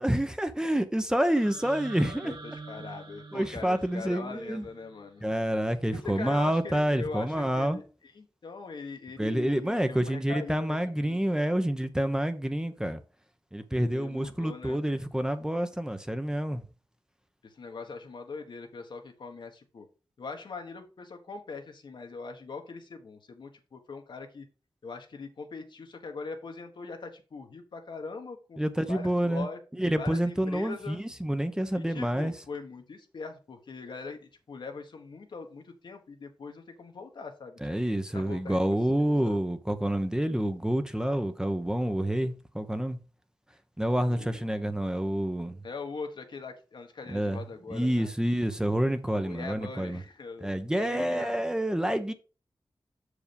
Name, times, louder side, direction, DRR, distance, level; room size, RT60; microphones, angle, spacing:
voice 1, 0.0-2.3 3.3-4.7 5.2-7.8 9.2-13.0 13.5-16.6 28.6-29.5 29.8-32.3 37.6-43.0 43.8-45.6 47.1-47.4 47.7-50.0 50.4-52.1, right 1 dB, 10° right, 0.8 m, -28 dB
sound 1, 1.2-5.3, right 3 dB, 65° right, 1.9 m, -46 dB
voice 2, 2.2-5.2 5.9-10.8 11.0-11.2 13.7-14.8 17.4-19.9 20.2-24.5 24.8-28.6 28.9-29.6 30.0-31.0 31.7-39.4 44.1-44.4 45.6-48.1 49.1-51.4, left 4 dB, 70° left, 1.4 m, -42 dB
6.6 x 4.9 x 5.3 m
cardioid pair, 70°, 8 cm